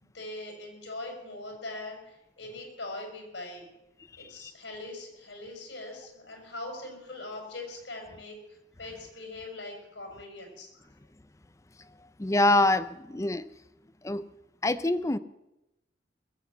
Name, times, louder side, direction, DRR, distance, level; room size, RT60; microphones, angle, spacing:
voice 1, 0.0-3.7 4.2-10.9, left 2 dB, 80° left, 2 dB, 5.1 m, -41 dB
voice 2, 12.2-13.4 14.0-14.3 14.6-15.2, left 2 dB, 15° left, 15 dB, 0.5 m, -25 dB
21.5 x 8.1 x 7.1 m, 0.93 s
head